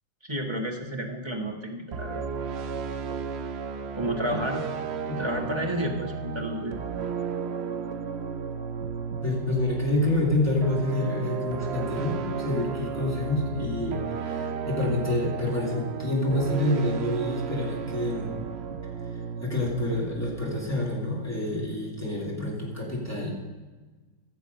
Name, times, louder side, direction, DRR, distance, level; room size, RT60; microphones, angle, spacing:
voice 1, 0.2-2.2 3.9-4.6 5.2-6.8, equal, 20° right, 0 dB, 1.1 m, -31 dB
sound 1, 1.9-21.1, right 6 dB, 80° right, 0.5 m, -34 dB
voice 2, 5.1-5.6 9.2-18.3 19.1-23.3, left 1 dB, 10° left, -5 dB, 2.9 m, -28 dB
15.5 x 7.1 x 5.3 m, 1.3 s
omnidirectional pair, 1.9 m